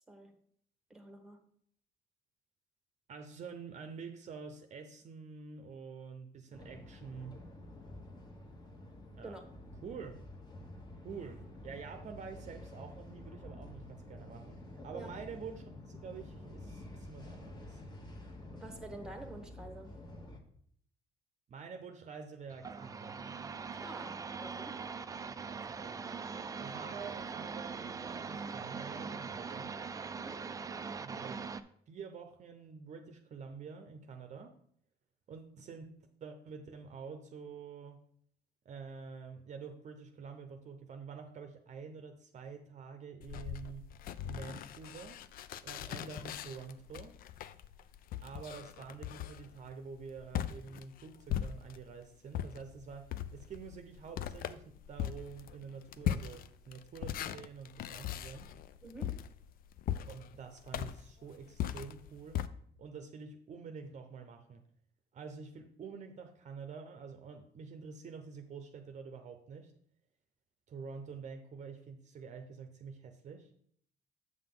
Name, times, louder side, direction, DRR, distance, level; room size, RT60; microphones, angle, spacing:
voice 1, 0.1-0.4 0.9-1.4 9.2-9.4 14.9-15.1 18.5-20.0 23.8-24.9 30.1-30.5 58.8-59.2, right 2 dB, 5° right, 7 dB, 1.1 m, -48 dB
voice 2, 3.1-7.4 9.2-9.4 9.8-10.2 11.0-17.8 21.5-23.2 25.3-26.0 26.6-29.8 31.0-31.4 31.9-34.6 35.3-38.0 38.6-43.9 44.2-45.2 45.6-47.2 48.2-58.5 60.1-62.4 62.8-64.6 65.1-69.7 70.7-73.5, right 5 dB, 45° right, 6 dB, 0.7 m, -48 dB
sound 1, 6.5-20.4, left 1 dB, 25° left, 1.2 m, -49 dB
sound 2, 22.5-31.6, right 5 dB, 20° right, 0.3 m, -42 dB
sound 3, 43.2-51.9 52.3-62.5, left 10 dB, 60° left, 0.4 m, -40 dB
7.7 x 5.8 x 3.7 m, 0.64 s
cardioid pair, 110°, 17 cm